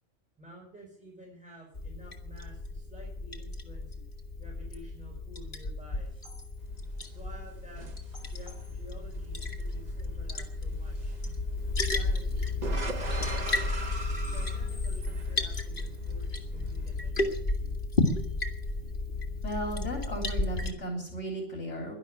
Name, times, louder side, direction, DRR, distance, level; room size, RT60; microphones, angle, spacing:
voice 1, 0.4-4.0 4.4-6.1 7.1-11.2 11.9-13.5 14.1-17.4, right 1 dB, 5° right, -2 dB, 5.2 m, -51 dB
Liquid, 1.7-20.7, left 2 dB, 45° left, 2.0 m, -33 dB
sound 1, 5.8-5.9 6.1-6.6 8.0-8.9 10.9-11.0 11.5-11.6 12.6-12.7 12.9-16.6 16.9-17.0 17.2-17.3 17.6-17.7 18.0-18.4 18.7-18.8, left 3 dB, 25° left, 3.5 m, -52 dB
sound 2, 6.6-17.1, right 2 dB, 35° right, 1.3 m, -42 dB
voice 2, 19.4-21.9, right 1 dB, 65° left, 1 dB, 3.9 m, -35 dB
11.5 x 11.5 x 10.0 m, 0.64 s
omnidirectional pair, 1.3 m